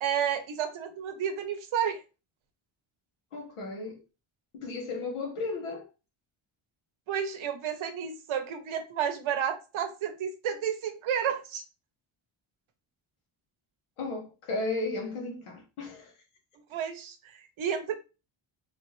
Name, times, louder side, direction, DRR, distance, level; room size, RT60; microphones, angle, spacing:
voice 1, 0.0-2.0 7.1-11.6 16.7-17.9, right 8 dB, 70° right, 0.8 m, -31 dB
voice 2, 3.3-4.0 4.5-5.9 14.0-16.1, left 3 dB, 85° left, 1.2 m, -34 dB
3.5 x 2.5 x 3.0 m
cardioid pair, 115°, 49 cm